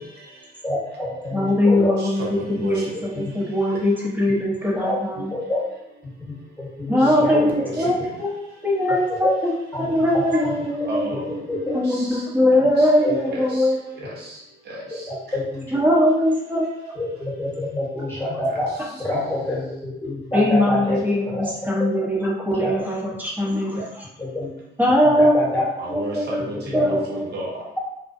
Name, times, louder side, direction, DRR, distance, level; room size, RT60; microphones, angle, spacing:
voice 1, 0.6-1.9 3.1-3.2 4.8-5.6 6.6-7.9 9.1-9.3 9.7-9.9 10.1-10.2 11.1-11.2 11.5-11.8 13.0-13.2 15.1-15.8 16.9-18.7 19.0-21.4 22.6-22.7 24.2-24.5 25.0-25.6 26.7-27.0, left 1 dB, 10° left, -6 dB, 1.1 m, -27 dB
voice 2, 1.3-5.3 6.9-8.4 8.6-9.5 9.8-11.2 11.5-13.7 15.7-16.7 20.3-24.0 24.8-25.5 25.9-26.4 26.7-27.3, left 1 dB, 10° right, -4 dB, 0.7 m, -21 dB
voice 3, 2.0-3.0 7.0-8.2 10.8-11.4 11.7-12.3 12.7-14.4 14.7-15.4 18.5-18.9 20.8-21.1 25.8-27.6, right 1 dB, 55° right, -5 dB, 0.9 m, -34 dB
2.5 x 2.1 x 2.5 m, 0.85 s
cardioid pair, 90°, 20 cm